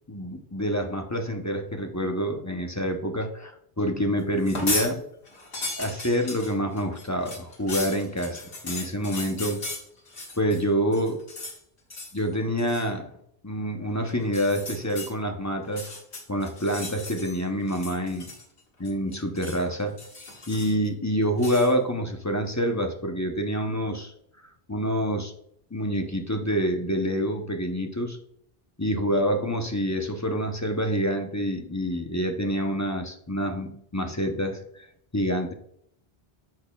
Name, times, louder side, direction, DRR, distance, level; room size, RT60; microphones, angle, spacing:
voice 1, 0.1-5.0 5.8-9.6 10.4-11.2 12.1-13.1 13.4-15.9 16.3-18.3 18.8-24.1 24.7-25.3 25.7-28.2 28.8-34.9 35.1-35.5, equal, 20° left, 3 dB, 0.7 m, -27 dB
sound 1, 4.4-4.9 5.3-10.6 10.9-11.6 11.9-12.2 12.6-12.9 14.2-15.1 15.6-17.4 17.7-18.6 18.8-19.6 20.0-20.9 21.4-21.7, left 2 dB, 75° left, 2.0 m, -36 dB
10.5 x 6.4 x 2.3 m, 0.71 s
omnidirectional pair, 1.1 m